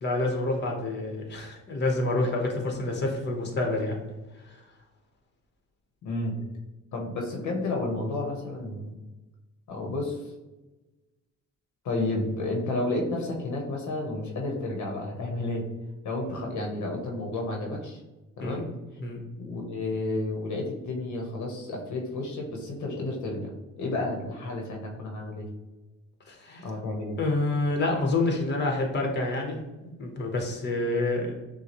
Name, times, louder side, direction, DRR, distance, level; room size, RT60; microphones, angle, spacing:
voice 1, 0.0-4.0 4.5-4.6 18.4-18.6 19.0-19.2 26.3-26.7 27.2-31.3, left 2 dB, 35° left, 1 dB, 1.1 m, -28 dB
voice 2, 6.0-6.5 6.9-9.0 9.7-10.3 11.8-15.6 16.0-18.0 18.4-18.6 19.4-23.5 23.8-25.5 26.6-27.2, left 2 dB, 70° left, 1 dB, 1.0 m, -31 dB
6.2 x 2.3 x 3.0 m, 1.1 s
cardioid pair, 90°, 30 cm